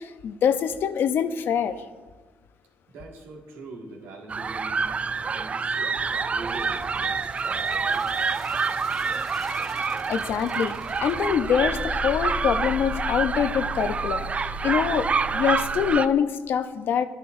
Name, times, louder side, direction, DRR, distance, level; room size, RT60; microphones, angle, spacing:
voice 1, 0.0-1.8 9.8-17.1, left 8 dB, 65° left, 10 dB, 0.6 m, -25 dB
voice 2, 2.9-8.1, right 2 dB, 80° right, -1 dB, 1.9 m, -43 dB
sound 1, 4.3-16.1, right 5 dB, 30° right, 0.3 m, -27 dB
sound 2, 6.0-15.9, left 3 dB, 10° left, 1.1 m, -38 dB
12.0 x 9.9 x 2.6 m, 1.4 s
cardioid pair, 80°, 4 cm